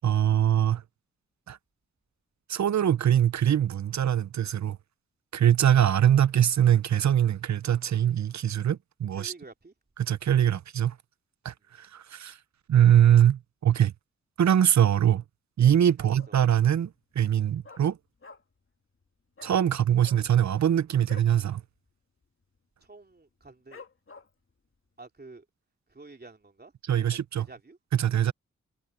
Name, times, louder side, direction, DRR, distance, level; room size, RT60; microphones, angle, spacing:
voice 1, 0.0-0.8 1.5-1.6 2.5-4.8 5.3-9.3 10.0-10.9 11.4-12.4 12.7-13.9 14.4-15.2 15.6-18.0 19.4-21.6 26.9-27.5 27.9-28.3, right 10 dB, 65° right, 0.9 m, -23 dB
voice 2, 9.1-9.7 16.0-16.4 22.8-23.8 25.0-25.4 25.9-27.1 27.3-27.8, right 3 dB, 30° right, 3.2 m, -49 dB
Dog, 16.2-16.6 16.9-17.0 17.2-18.7 18.9-19.1 19.3-19.6 20.0-21.4 21.7-21.9 22.2-22.6 23.0-23.1 23.7-24.5 25.0-25.1, left 4 dB, 45° left, 2.3 m, -49 dB
supercardioid pair, 45°, 30 cm